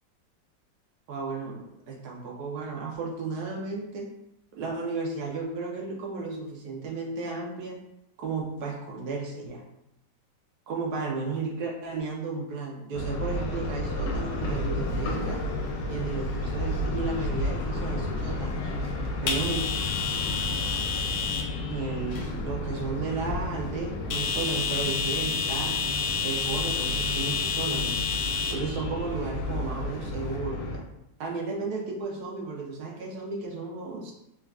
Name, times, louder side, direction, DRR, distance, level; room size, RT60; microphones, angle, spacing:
voice 1, 1.1-4.1 4.5-7.8 8.2-9.6 10.7-15.4 15.9-18.7 19.2-19.7 21.7-25.7 26.2-27.9 28.5-30.8 31.2-34.1, right 4 dB, 70° right, -1 dB, 1.2 m, -34 dB
sound 1, 12.9-30.8, left 1 dB, 90° left, 1.3 m, -32 dB
sound 2, 14.2-30.4, left 5 dB, 70° left, 1.0 m, -32 dB
3.7 x 3.4 x 2.4 m, 0.84 s
omnidirectional pair, 1.9 m